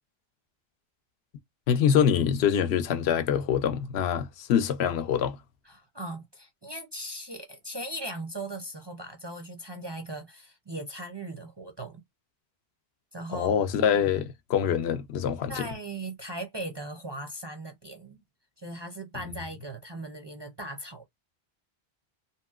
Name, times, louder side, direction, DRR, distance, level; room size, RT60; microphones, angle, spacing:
voice 1, 1.7-5.4 13.3-15.7, left 8 dB, 80° left, 0.8 m, -25 dB
voice 2, 5.6-12.0 13.1-13.5 15.5-18.2 18.6-21.0, right 1 dB, 35° right, 0.4 m, -38 dB
2.9 x 2.8 x 2.3 m
omnidirectional pair, 1.1 m